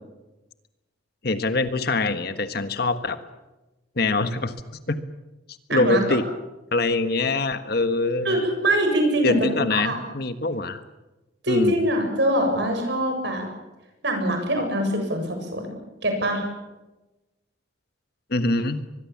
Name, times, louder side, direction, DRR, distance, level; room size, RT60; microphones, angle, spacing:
voice 1, 1.2-3.2 4.0-5.0 5.7-6.2 6.7-8.4 9.2-10.8 11.5-11.8 18.3-18.8, left 3 dB, 50° left, 10 dB, 1.5 m, -24 dB
voice 2, 5.7-6.0 8.2-10.0 11.4-13.5 14.0-15.6 16.0-16.4, right 1 dB, 60° right, 4 dB, 7.3 m, -23 dB
24.0 x 21.5 x 7.3 m, 1.0 s
head